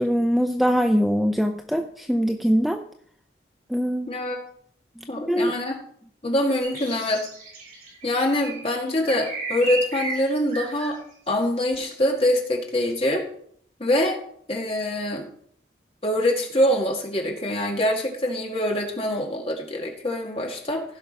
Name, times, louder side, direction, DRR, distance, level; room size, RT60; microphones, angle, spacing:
voice 1, 0.0-2.8 3.7-4.1 5.3-5.6, equal, ahead, 5 dB, 0.4 m, -22 dB
voice 2, 4.1-4.4 5.1-5.8 6.2-7.3 8.0-11.0 11.3-13.2 13.8-14.2 14.5-15.3 16.0-20.8, left 1 dB, 30° left, 1 dB, 1.9 m, -24 dB
sound 1, 6.6-10.9, right 2 dB, 50° right, 5.1 m, -34 dB
16.0 x 5.4 x 5.3 m, 0.63 s
head